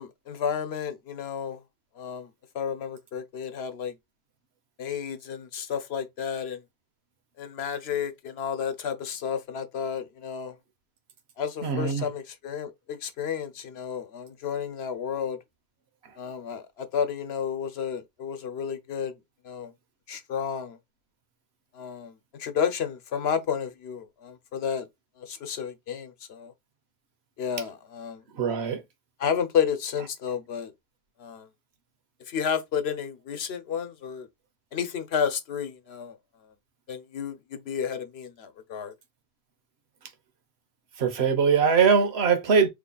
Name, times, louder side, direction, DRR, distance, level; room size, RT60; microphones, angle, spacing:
voice 1, 0.0-1.6 2.0-2.3 2.5-3.9 4.8-6.6 7.4-10.6 11.4-15.4 16.2-19.1 19.4-19.7 20.1-20.8 21.7-22.1 22.4-24.9 25.2-26.5 27.4-28.2 29.2-30.7 31.2-31.5 32.3-34.3 34.7-36.2 36.9-38.9, left 7 dB, 80° left, 1.0 m, -31 dB
voice 2, 11.6-12.1 28.3-28.8 41.0-42.7, right 6 dB, 90° right, 1.1 m, -22 dB
3.8 x 3.2 x 2.3 m
omnidirectional pair, 1.0 m